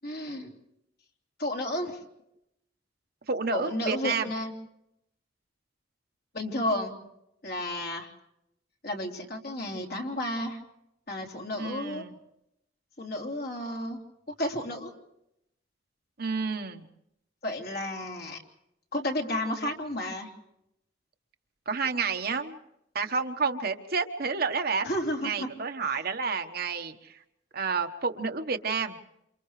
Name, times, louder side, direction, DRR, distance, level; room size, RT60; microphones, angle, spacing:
voice 1, 0.0-0.6 1.4-2.0 3.5-4.5 6.3-6.9 7.4-8.1 8.8-10.6 11.1-12.0 13.0-14.0 14.4-14.9 17.4-18.4 18.9-20.3 24.8-25.5 25.8-26.0, left 1 dB, 55° left, 0 dB, 3.3 m, -32 dB
voice 2, 3.3-4.3 11.6-12.1 16.2-16.8 21.7-22.6 22.9-24.9 25.2-27.2 27.5-29.0, right 5 dB, 55° right, 6 dB, 1.2 m, -30 dB
28.5 x 28.0 x 3.3 m, 0.81 s
head